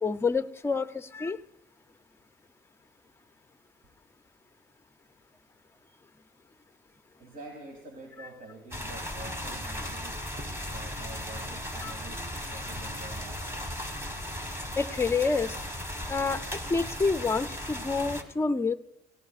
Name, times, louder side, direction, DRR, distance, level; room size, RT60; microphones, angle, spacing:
voice 1, 0.0-1.4 8.2-8.3 11.8-11.9 14.8-15.6 16.1-18.7, left 4 dB, 15° left, 9 dB, 0.6 m, -28 dB
voice 2, 7.2-10.2 10.7-13.4, right 2 dB, 60° right, 1 dB, 2.6 m, -47 dB
sound 1, 8.7-18.2, left 1 dB, 15° right, 1.8 m, -36 dB
28.5 x 18.0 x 2.5 m, 0.94 s
cardioid pair, 110°, 17 cm